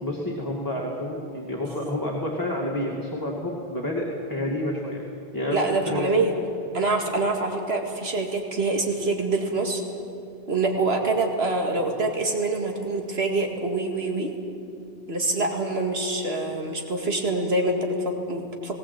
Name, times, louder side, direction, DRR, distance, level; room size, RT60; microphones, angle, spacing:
voice 1, 0.0-5.0 5.3-6.1, left 1 dB, 20° left, -3 dB, 2.4 m, -29 dB
voice 2, 5.5-6.3 6.7-9.8 10.5-14.3 15.1-18.8, right 2 dB, 80° right, 2 dB, 2.4 m, -25 dB
19.5 x 17.5 x 8.5 m, 2.6 s
omnidirectional pair, 1.0 m